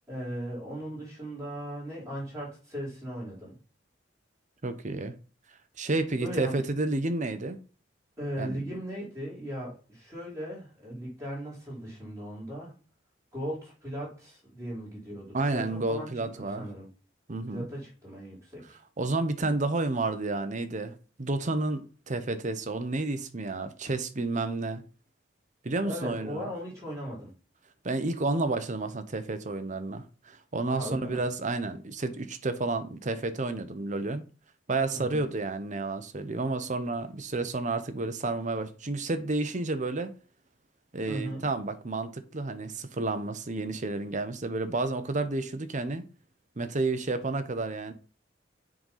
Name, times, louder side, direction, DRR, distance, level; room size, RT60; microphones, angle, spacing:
voice 1, 0.1-3.5 6.2-6.6 8.2-12.7 13.3-16.1 16.4-16.9 17.5-18.8 25.8-27.3 30.7-31.2 34.9-35.2 41.1-41.4, equal, 15° right, 4.8 m, -38 dB
voice 2, 4.6-5.2 5.8-7.6 8.4-8.6 15.3-16.7 17.3-17.7 19.0-24.8 25.6-26.5 27.8-34.2 34.7-40.1 40.9-46.0 46.6-47.9, right 2 dB, 40° right, 0.9 m, -31 dB
7.7 x 3.9 x 5.6 m
head